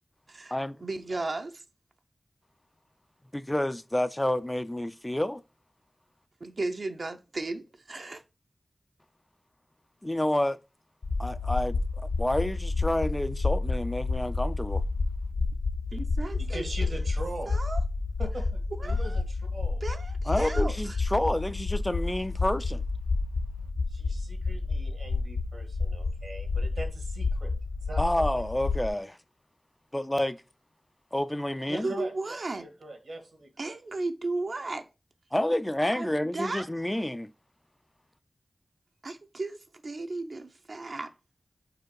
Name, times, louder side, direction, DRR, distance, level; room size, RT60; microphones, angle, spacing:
voice 1, 0.8-1.6 6.4-8.2 15.9-16.9 17.5-17.8 18.8-19.2 19.8-21.0 31.8-32.6 33.6-34.9 35.9-36.7 39.0-39.6 39.8-41.1, right 2 dB, 70° right, 0.7 m, -35 dB
voice 2, 3.3-5.4 10.0-10.6 11.2-14.8 20.3-22.8 28.0-29.2 29.9-30.4 31.1-31.9 35.3-37.3, left 1 dB, 20° left, 0.4 m, -29 dB
sound 1, 11.0-28.9, left 3 dB, 85° left, 0.5 m, -30 dB
voice 3, 16.5-17.6 18.2-19.2 19.5-19.8 23.9-27.5 27.8-28.0 31.7-33.8, right 2 dB, 85° right, 1.7 m, -41 dB
4.8 x 4.2 x 4.7 m
cardioid pair, 40°, 0 cm